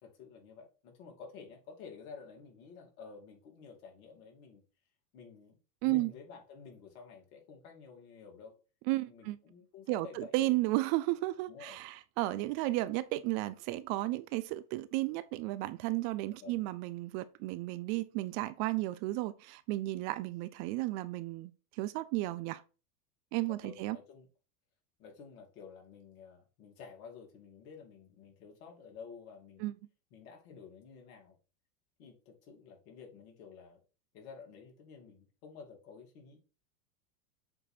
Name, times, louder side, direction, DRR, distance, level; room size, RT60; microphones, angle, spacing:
voice 1, 0.0-4.6 5.1-8.6 9.1-10.5 11.5-11.8 16.3-16.6 23.6-24.3 25.0-29.7 30.1-31.4 32.0-33.8 34.1-36.4, left 5 dB, 65° left, 2.6 m, -51 dB
voice 2, 8.9-9.4 9.9-21.5 21.8-22.6 23.3-24.0 29.6-29.7, right 18 dB, 50° right, 0.6 m, -33 dB
7.7 x 3.1 x 4.3 m
hypercardioid pair, 110°, 47 cm